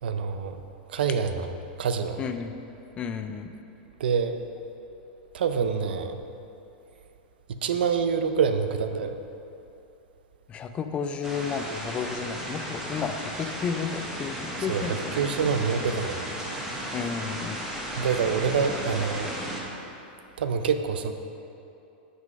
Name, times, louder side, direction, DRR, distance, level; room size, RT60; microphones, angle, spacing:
voice 1, 0.0-0.6 0.9-2.2 4.0-4.4 5.3-6.2 7.5-9.2 14.7-16.3 18.0-19.3 20.4-21.1, right 6 dB, 90° right, 8 dB, 0.5 m, -26 dB
voice 2, 2.2-2.5 3.0-3.5 10.5-15.0 16.9-17.6, left 6 dB, 20° left, 8 dB, 0.4 m, -32 dB
sound 1, 11.2-19.6, right 1 dB, 10° right, 1.0 m, -35 dB
6.3 x 5.4 x 5.2 m, 2.8 s
supercardioid pair, 150°, 5 cm